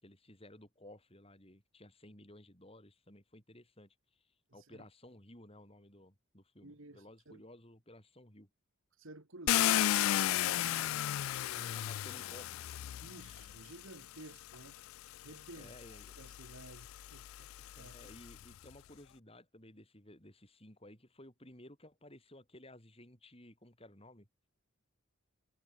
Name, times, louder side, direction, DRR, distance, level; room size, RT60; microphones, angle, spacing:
voice 1, 0.0-4.2 4.5-8.5 11.6-12.6 15.6-16.1 17.7-24.3, left 1 dB, 30° left, 7.4 m, -56 dB
voice 2, 4.5-4.9 6.6-7.4 9.0-11.1 11.5-11.7 13.0-14.8 15.2-17.5 17.8-18.0, right 2 dB, 75° right, 2.8 m, -54 dB
Car, 9.5-13.6 14.5-14.6 15.2-18.4, left 13 dB, 85° left, 0.3 m, -34 dB
head